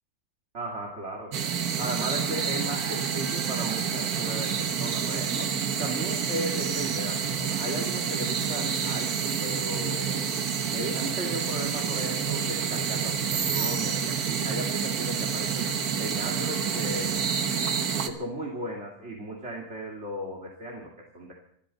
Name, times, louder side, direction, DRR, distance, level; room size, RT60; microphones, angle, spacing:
voice 1, 0.5-1.4 1.8-10.3 10.7-17.4 18.0-21.3, right 1 dB, 45° right, -2 dB, 2.5 m, -36 dB
sound 1, 1.3-18.1, right 7 dB, 75° right, 1.7 m, -28 dB
26.5 x 13.0 x 4.1 m, 0.68 s
omnidirectional pair, 1.6 m